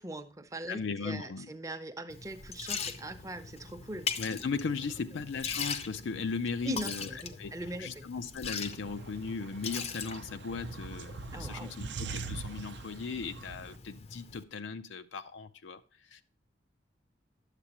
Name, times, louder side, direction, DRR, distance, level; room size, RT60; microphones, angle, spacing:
voice 1, 0.0-4.1 6.6-8.1 11.3-11.7, right 1 dB, 20° right, 0.6 m, -41 dB
voice 2, 0.7-1.5 4.2-7.5 7.8-15.8 16.1-16.2, left 5 dB, 85° left, 0.5 m, -37 dB
Liquid, 2.1-14.4, left 5 dB, 35° left, 0.5 m, -41 dB
sound 1, 8.6-13.8, right 4 dB, 65° right, 0.5 m, -43 dB
9.7 x 7.3 x 2.9 m
head